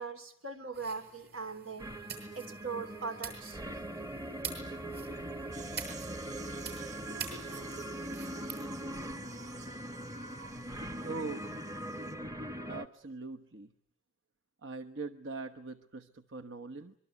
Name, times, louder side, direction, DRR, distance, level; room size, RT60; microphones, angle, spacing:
voice 1, 0.0-1.9 2.3-3.6, right 4 dB, 90° right, 3.2 m, -40 dB
sound 1, 0.7-8.6, right 6 dB, 55° right, 7.9 m, -46 dB
sound 2, 1.8-12.9, right 1 dB, 20° right, 1.1 m, -41 dB
sound 3, 5.5-12.1, right 6 dB, 40° right, 4.9 m, -53 dB
voice 2, 11.0-11.5 12.7-13.7 14.6-16.9, right 3 dB, 70° right, 1.1 m, -41 dB
25.0 x 23.5 x 9.4 m
head